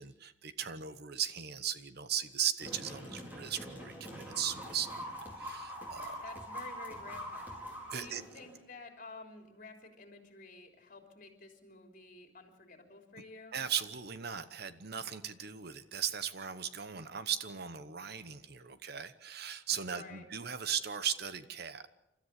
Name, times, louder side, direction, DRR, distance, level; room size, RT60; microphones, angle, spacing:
voice 1, 0.0-5.0 5.4-6.2 7.9-8.2 13.5-21.9, right 8 dB, 55° right, 12 dB, 1.0 m, -37 dB
sound 1, 2.6-8.6, equal, 10° right, 4.5 m, -44 dB
voice 2, 6.2-7.4 7.9-13.6 19.8-20.2, left 3 dB, 45° left, 4 dB, 3.5 m, -51 dB
29.0 x 13.5 x 8.2 m, 0.93 s
head